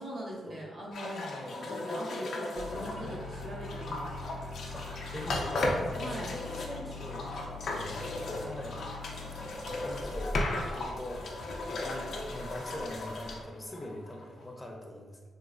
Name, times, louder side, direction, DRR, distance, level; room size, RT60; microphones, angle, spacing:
voice 1, 0.0-1.3 1.6-4.2 6.0-6.3, right 1 dB, 60° right, -4 dB, 1.2 m, -41 dB
sound 1, 0.9-14.4, left 2 dB, 75° left, 0.5 m, -36 dB
voice 2, 1.0-1.6 3.0-3.2 4.7-8.8 9.4-11.3 11.6-15.4, left 1 dB, 15° left, 1 dB, 0.5 m, -42 dB
sound 2, 2.6-13.4, left 2 dB, 80° right, 0.7 m, -43 dB
3.2 x 3.0 x 2.5 m, 1.5 s
cardioid pair, 65°, 0 cm